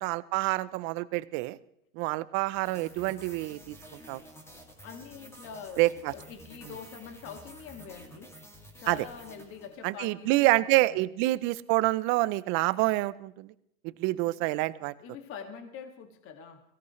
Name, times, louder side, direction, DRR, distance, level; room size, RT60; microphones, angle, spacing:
voice 1, 0.0-1.6 2.0-3.7 4.1-4.2 5.8-6.1 8.9-9.0 9.8-13.5 14.0-14.9, right 19 dB, 30° right, 17 dB, 0.5 m, -27 dB
sound 1, 2.5-10.1, equal, 5° left, 2.3 m, -51 dB
voice 2, 4.8-5.9 6.1-8.3 8.8-11.0 14.2-14.3 15.0-16.6, left 7 dB, 30° left, 7 dB, 2.0 m, -44 dB
23.0 x 17.0 x 3.1 m, 0.75 s
hypercardioid pair, 130°, 42 cm